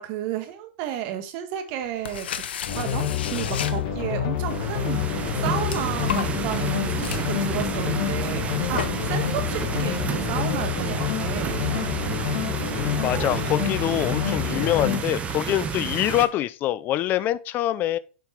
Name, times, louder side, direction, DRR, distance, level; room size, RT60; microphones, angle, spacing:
voice 1, 0.0-2.3 2.7-5.0 5.4-11.6, right 10 dB, 50° right, 1.4 m, -32 dB
sound 1, 1.9-4.3 4.9-10.2, left 8 dB, 85° left, 0.7 m, -35 dB
sound 2, 2.7-15.0, left 9 dB, 55° left, 1.5 m, -28 dB
sound 3, 4.4-16.3, right 7 dB, 25° right, 0.9 m, -31 dB
voice 2, 12.8-18.0, left 13 dB, 35° left, 0.5 m, -25 dB
6.9 x 4.6 x 3.9 m
hypercardioid pair, 125°, 6 cm